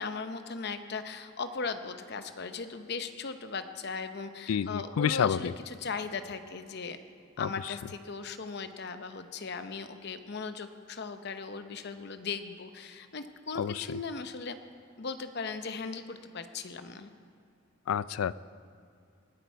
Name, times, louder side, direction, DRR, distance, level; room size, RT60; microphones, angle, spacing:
voice 1, 0.0-7.0 7.4-14.6 15.0-17.1, left 4 dB, 55° left, 9 dB, 0.7 m, -38 dB
voice 2, 4.5-5.4 7.4-7.5 13.6-13.7 17.9-18.3, left 8 dB, 90° left, 18 dB, 0.4 m, -28 dB
20.0 x 10.5 x 4.6 m, 2.3 s
head